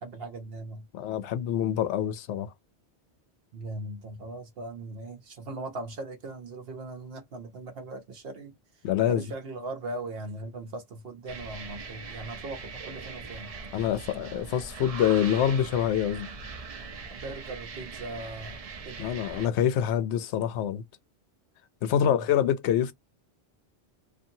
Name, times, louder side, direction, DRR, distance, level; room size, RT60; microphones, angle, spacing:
voice 1, 0.0-0.9 3.5-13.5 17.1-19.1 21.9-22.3, right 2 dB, 65° right, 0.9 m, -39 dB
voice 2, 0.9-2.5 8.8-9.2 13.7-16.3 19.0-20.8 21.8-22.9, left 9 dB, 85° left, 0.9 m, -26 dB
sound 1, 11.3-19.5, right 4 dB, 45° right, 0.5 m, -41 dB
2.7 x 2.5 x 2.6 m
omnidirectional pair, 1.1 m